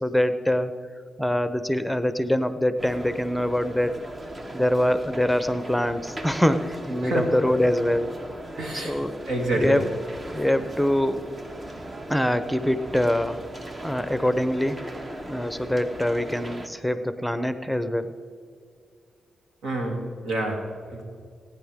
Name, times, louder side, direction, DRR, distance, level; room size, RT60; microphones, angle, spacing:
voice 1, 0.0-0.7 1.2-3.9 4.5-8.1 8.7-9.1 9.5-9.9 10.3-11.3 12.1-13.4 13.8-14.9 15.2-18.1, left 1 dB, ahead, 11 dB, 0.9 m, -24 dB
sound 1, 2.8-16.7, right 1 dB, 40° right, 1.5 m, -38 dB
voice 2, 8.6-9.0 9.3-9.8 19.6-21.0, right 1 dB, 75° right, 1 dB, 2.6 m, -28 dB
20.0 x 9.6 x 3.7 m, 2.3 s
supercardioid pair, 40°, 0 cm